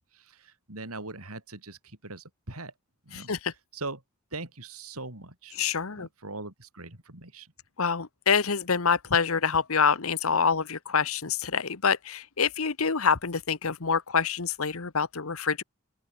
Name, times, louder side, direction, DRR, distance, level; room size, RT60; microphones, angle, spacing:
voice 1, 0.0-2.7 3.1-3.3 3.7-4.0 4.3-5.6 6.0-7.5, right 2 dB, 85° right, 5.6 m, -41 dB
voice 2, 3.1-3.5 5.6-6.1 7.8-15.6, left 6 dB, 80° left, 1.2 m, -26 dB
open air
head